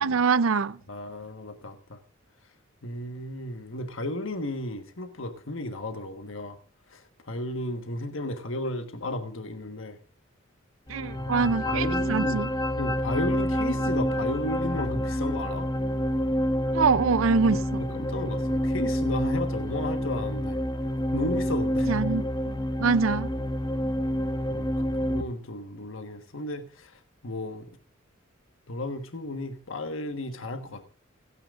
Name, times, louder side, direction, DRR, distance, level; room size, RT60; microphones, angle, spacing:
voice 1, 0.0-0.8 10.9-12.5 16.7-17.8 21.9-22.2 22.8-23.3, right 5 dB, 80° right, 0.5 m, -24 dB
voice 2, 0.9-2.0 2.8-6.6 6.9-10.0 11.0-12.4 12.8-15.7 17.5-17.6 17.9-20.6 21.1-21.9 24.5-27.7 28.7-30.9, left 1 dB, 70° left, 1.4 m, -34 dB
sound 1, 10.9-25.2, equal, 20° left, 1.2 m, -28 dB
29.5 x 9.8 x 2.5 m
head